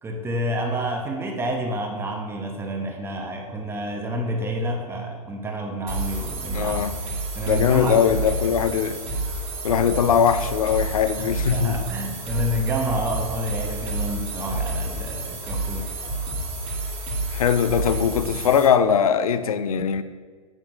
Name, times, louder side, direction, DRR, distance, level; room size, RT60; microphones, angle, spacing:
voice 1, 0.0-6.9 7.3-8.1 9.9-10.1 11.2-15.9, equal, 10° right, 0.9 m, -29 dB
sound 1, 5.9-18.7, right 2 dB, 35° right, 1.7 m, -29 dB
voice 2, 6.5-6.9 7.5-9.0 9.6-11.9 17.3-20.0, left 7 dB, 70° left, 0.4 m, -21 dB
8.4 x 6.2 x 2.6 m
figure-of-eight pair, 100°, 19 cm